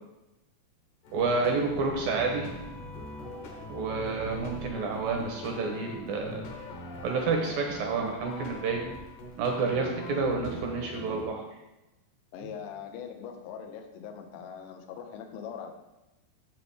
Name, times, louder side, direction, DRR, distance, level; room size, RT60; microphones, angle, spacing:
sound 1, 1.0-11.2, left 1 dB, 65° left, 2.3 m, -42 dB
voice 1, 1.1-2.5 3.7-6.4 7.0-8.8 9.4-11.4, right 4 dB, 75° right, 2 dB, 2.2 m, -29 dB
voice 2, 12.3-15.7, left 7 dB, 85° left, 4 dB, 3.1 m, -41 dB
9.7 x 7.4 x 3.5 m, 0.99 s
omnidirectional pair, 5.1 m